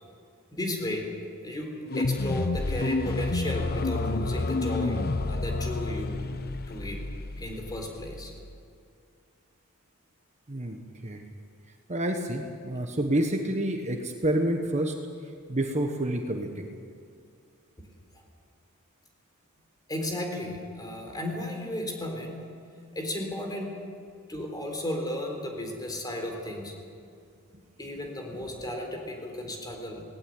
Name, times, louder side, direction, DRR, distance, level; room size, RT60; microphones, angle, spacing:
voice 1, 0.5-1.1 1.4-5.0 5.3-6.3 6.7-7.0 7.4-8.3 17.8-17.9 19.9-22.4 22.9-23.7 24.3-26.7 27.8-30.0, left 1 dB, 20° left, 2 dB, 4.0 m, -34 dB
sound 1, 1.9-8.5, left 3 dB, 45° left, 0.9 m, -30 dB
voice 2, 10.5-11.2 11.9-14.9 15.5-16.7 28.4-28.5, right 1 dB, 30° right, 4 dB, 1.3 m, -28 dB
18.5 x 17.5 x 9.5 m, 2.3 s
head